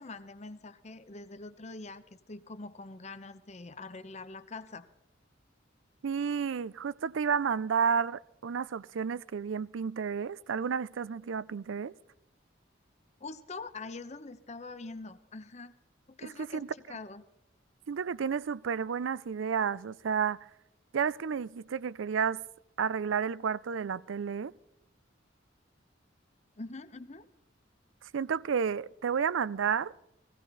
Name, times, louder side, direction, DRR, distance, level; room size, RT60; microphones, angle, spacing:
voice 1, 0.0-4.9 13.2-15.7 16.1-17.2 26.6-27.3, left 3 dB, 35° left, 0.8 m, -44 dB
voice 2, 6.0-11.9 16.2-16.7 17.9-20.4 20.9-22.4 22.8-24.5 28.1-29.9, right 6 dB, 80° right, 0.4 m, -31 dB
18.0 x 16.0 x 4.0 m
head